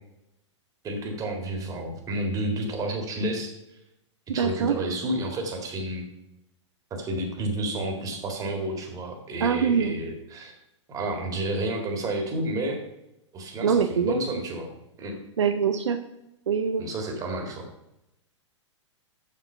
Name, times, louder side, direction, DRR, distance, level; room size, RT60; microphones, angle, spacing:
voice 1, 0.8-3.5 4.3-6.1 6.9-10.6 10.9-12.8 13.3-14.7 15.0-15.2 16.8-17.7, right 1 dB, 20° right, 3 dB, 1.9 m, -30 dB
voice 2, 4.4-4.7 9.4-9.9 13.6-14.2 15.4-16.0 16.5-16.8, right 6 dB, 65° right, 8 dB, 0.6 m, -23 dB
7.3 x 6.7 x 5.5 m, 0.87 s
figure-of-eight pair, 105°, 16 cm